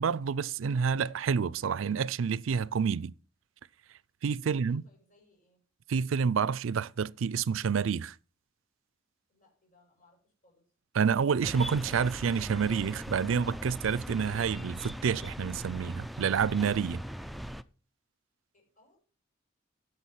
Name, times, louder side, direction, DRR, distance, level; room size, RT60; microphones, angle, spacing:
voice 1, 0.0-3.1 4.2-4.8 5.9-8.1 10.9-17.0, right 6 dB, 85° right, 0.4 m, -28 dB
voice 2, 4.4-5.6 9.3-10.6 18.5-19.0, left 2 dB, 40° left, 6.2 m, -65 dB
sound 1, 11.4-17.6, equal, ahead, 0.4 m, -40 dB
10.5 x 6.9 x 5.6 m
head